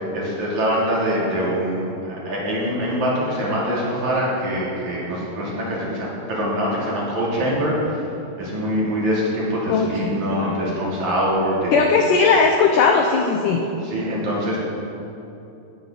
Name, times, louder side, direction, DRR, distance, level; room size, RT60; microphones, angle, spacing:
voice 1, 0.1-8.0 8.4-11.9 13.8-14.6, equal, 50° right, -6 dB, 3.8 m, -24 dB
voice 2, 9.7-10.6 11.7-13.6, left 4 dB, 80° left, 3 dB, 1.9 m, -18 dB
15.5 x 12.5 x 4.0 m, 2.8 s
omnidirectional pair, 4.7 m